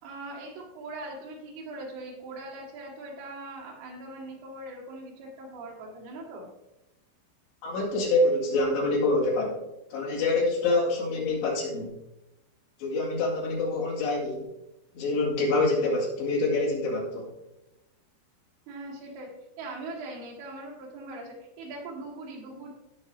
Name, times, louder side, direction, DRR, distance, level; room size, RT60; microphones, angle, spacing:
voice 1, 0.0-6.5 18.7-19.3 19.6-22.7, right 2 dB, 90° right, -2 dB, 4.6 m, -41 dB
voice 2, 7.6-9.6 9.9-11.9 12.8-14.5 15.0-17.3, left 2 dB, 65° left, -4 dB, 4.3 m, -26 dB
16.0 x 6.4 x 2.8 m, 0.94 s
omnidirectional pair, 5.4 m